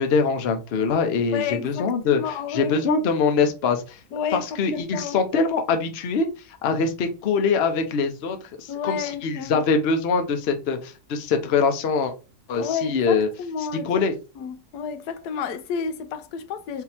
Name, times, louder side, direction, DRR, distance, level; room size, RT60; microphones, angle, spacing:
voice 1, 0.0-4.0 4.3-6.3 6.6-12.1 12.5-13.3 13.8-14.1, left 5 dB, 50° left, 0.8 m, -23 dB
voice 2, 1.3-2.8 4.1-4.5 4.7-5.2 8.7-9.6 12.6-13.9 14.4-16.8, left 7 dB, 90° left, 1.2 m, -30 dB
3.8 x 2.8 x 4.2 m
omnidirectional pair, 1.7 m